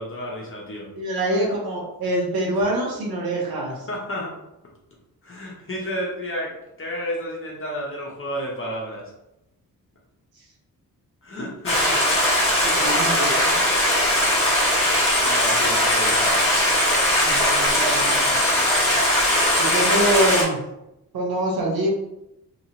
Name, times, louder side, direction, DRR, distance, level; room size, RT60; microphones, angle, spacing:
voice 1, 0.0-0.9 3.9-4.3 5.2-6.5 6.8-9.0 11.2-12.0 15.2-16.3, equal, 35° left, -3 dB, 0.7 m, -31 dB
voice 2, 1.0-3.9 10.4-10.5 12.6-13.7 17.2-18.7 19.6-20.6 21.1-21.9, right 1 dB, 80° right, -2 dB, 1.0 m, -25 dB
Stream, 11.6-20.4, left 1 dB, 15° left, 1.4 m, -19 dB
2.9 x 2.7 x 2.8 m, 0.86 s
wide cardioid pair, 120°, 36 cm